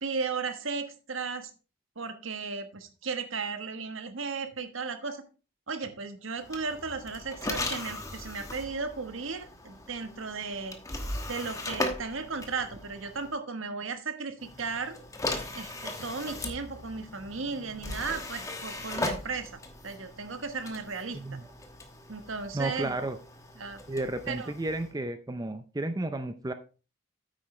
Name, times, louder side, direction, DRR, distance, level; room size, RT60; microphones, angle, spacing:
voice 1, 0.0-1.5 2.0-5.2 5.7-10.8 11.3-15.0 15.5-21.2 22.1-22.9 23.6-23.8 24.3-24.5, right 4 dB, 75° right, 8 dB, 1.3 m, -35 dB
sound 1, 6.4-13.3 14.4-24.9, left 2 dB, 15° left, 1.1 m, -38 dB
voice 2, 21.1-21.4 22.5-23.2 23.9-26.5, right 2 dB, 20° right, 10 dB, 0.5 m, -32 dB
9.0 x 8.8 x 3.2 m, 0.34 s
head